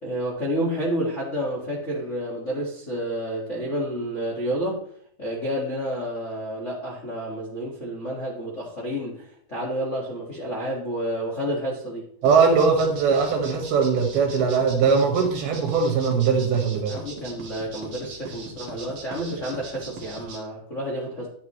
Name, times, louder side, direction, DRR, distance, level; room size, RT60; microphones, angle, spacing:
voice 1, 0.0-4.8 5.2-12.1 16.9-21.3, equal, 40° left, -3 dB, 1.0 m, -30 dB
sound 1, 12.2-20.4, right 3 dB, 50° right, 1.5 m, -40 dB
voice 2, 12.2-17.0, right 5 dB, 85° right, 3 dB, 3.6 m, -20 dB
10.0 x 9.6 x 3.1 m, 0.62 s
omnidirectional pair, 4.3 m